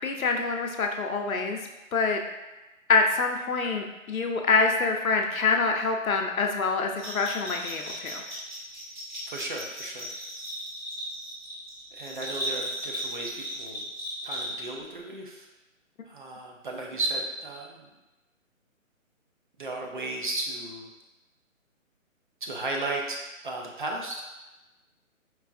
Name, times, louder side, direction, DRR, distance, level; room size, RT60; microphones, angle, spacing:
voice 1, 0.0-1.6 1.9-2.2 2.9-8.2, left 4 dB, 85° left, 3 dB, 0.8 m, -26 dB
Bell, 7.0-14.8, equal, 10° right, 0.9 m, -36 dB
voice 2, 9.3-10.1 11.9-13.9 14.2-15.5 16.1-17.9 19.6-20.9 22.4-24.2, right 2 dB, 40° right, 0 dB, 0.5 m, -34 dB
4.6 x 3.2 x 2.5 m, 1.1 s
hypercardioid pair, 150°, 41 cm